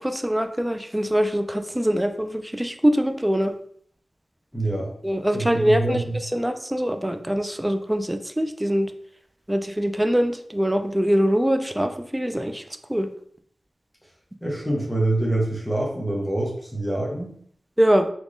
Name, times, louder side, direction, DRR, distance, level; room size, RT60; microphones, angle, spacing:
voice 1, 0.0-3.5 5.0-8.9 9.5-12.6 12.9-13.1 17.8-18.1, equal, 15° right, 7 dB, 0.4 m, -23 dB
voice 2, 4.5-4.9 5.3-6.1 14.4-17.3, right 2 dB, 5° left, -3 dB, 1.1 m, -25 dB
3.6 x 3.0 x 2.5 m, 0.62 s
cardioid pair, 40°, 0 cm